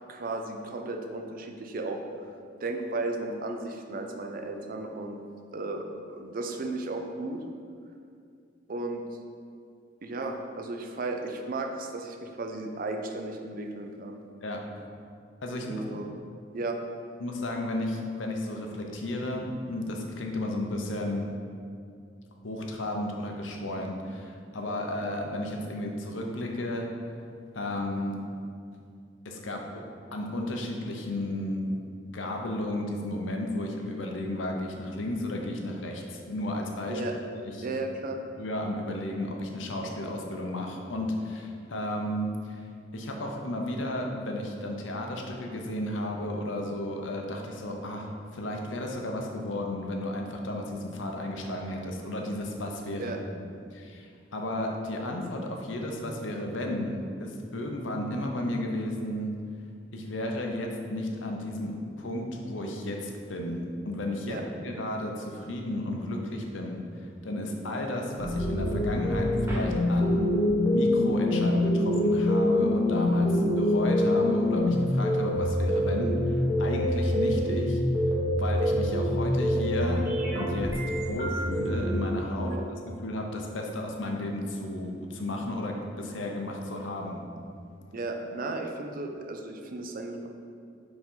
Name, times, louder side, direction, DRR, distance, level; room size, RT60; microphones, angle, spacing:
voice 1, 0.1-2.0 2.6-5.2 5.5-7.4 8.7-9.0 10.0-14.2 15.6-16.1 16.5-16.8 36.9-37.1 37.6-38.2 53.0-53.2 64.2-64.4 82.4-82.6 87.9-90.3, right 2 dB, 50° right, 4 dB, 0.5 m, -34 dB
voice 2, 17.2-21.3 22.4-26.9 27.5-28.2 29.2-29.8 30.1-31.6 32.1-37.0 37.3-37.8 38.4-42.6 42.9-59.3 59.9-70.3 70.7-77.8 78.4-80.8 81.1-82.5 83.0-87.2, left 1 dB, 90° left, 1 dB, 0.8 m, -33 dB
sound 1, 68.2-82.0, left 1 dB, 15° right, 1.0 m, -25 dB
4.9 x 3.8 x 5.5 m, 2.4 s
head